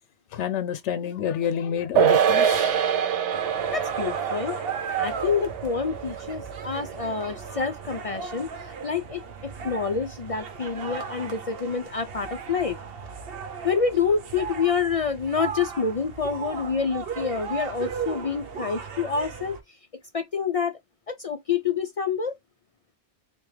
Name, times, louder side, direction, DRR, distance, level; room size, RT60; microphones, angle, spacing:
voice 1, 0.3-2.8, left 8 dB, 85° left, 0.9 m, -28 dB
sound 1, 2.0-8.6 8.9-9.0, right 9 dB, 85° right, 0.9 m, -26 dB
sound 2, 3.3-19.6, right 6 dB, 60° right, 0.9 m, -36 dB
voice 2, 3.7-4.5 5.0-9.2 9.6-12.8 13.6-19.6 20.1-20.8 21.1-22.4, left 6 dB, 60° left, 0.3 m, -27 dB
3.6 x 2.9 x 3.1 m
omnidirectional pair, 1.2 m